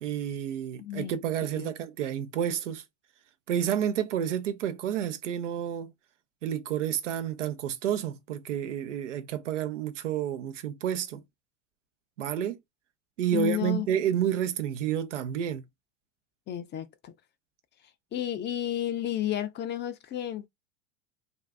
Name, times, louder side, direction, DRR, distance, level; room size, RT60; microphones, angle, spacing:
voice 1, 0.0-2.8 3.5-5.9 6.4-11.2 12.2-12.6 13.2-15.6, right 9 dB, 85° right, 0.7 m, -30 dB
voice 2, 0.8-1.1 1.5-1.7 13.3-13.9 16.5-17.1 18.1-20.5, left 12 dB, 30° left, 0.5 m, -32 dB
2.6 x 2.3 x 3.3 m
hypercardioid pair, 90°, 35 cm